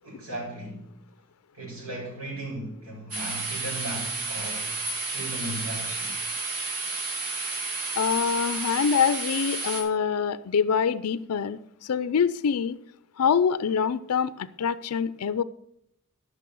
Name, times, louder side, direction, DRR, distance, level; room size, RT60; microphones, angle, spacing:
voice 1, 0.0-0.9 1.5-6.2, right 1 dB, 65° right, -3 dB, 5.2 m, -37 dB
sound 1, 3.1-9.8, right 3 dB, 85° right, 3.7 m, -31 dB
voice 2, 8.0-12.8 13.2-15.4, left 6 dB, 80° left, 15 dB, 0.4 m, -25 dB
13.0 x 6.1 x 6.9 m, 0.75 s
head